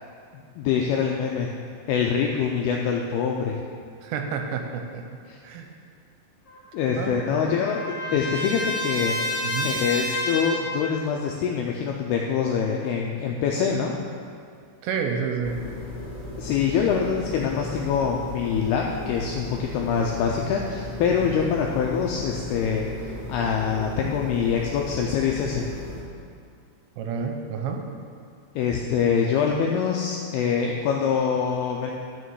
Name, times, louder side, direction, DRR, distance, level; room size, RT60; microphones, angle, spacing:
voice 1, 0.6-1.5 1.9-3.6 5.3-5.4 6.7-9.2 9.6-13.9 16.4-22.9 23.3-25.7 28.6-31.9, left 6 dB, 90° left, 0 dB, 2.2 m, -25 dB
voice 2, 4.0-5.7 6.9-7.7 9.4-9.7 14.8-15.6 27.0-27.8, right 6 dB, 80° right, 3 dB, 2.8 m, -30 dB
Trumpet, 6.5-10.9, left 1 dB, 45° left, 1.4 m, -30 dB
sound 1, 15.4-26.0, left 2 dB, 25° left, 1.2 m, -36 dB
11.5 x 6.3 x 4.7 m, 2.3 s
omnidirectional pair, 5.1 m